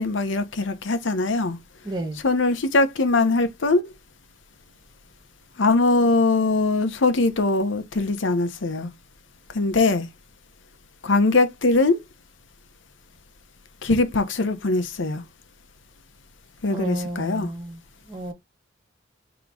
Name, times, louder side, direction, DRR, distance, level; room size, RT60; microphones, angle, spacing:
voice 1, 0.0-1.6 2.2-3.9 5.6-8.9 9.5-10.1 11.0-12.0 13.8-15.2 16.6-17.5, left 3 dB, 75° left, 0.8 m, -21 dB
voice 2, 1.8-2.2 16.7-17.8 18.1-18.3, right 1 dB, 20° right, 1.1 m, -31 dB
3.8 x 3.0 x 4.6 m
head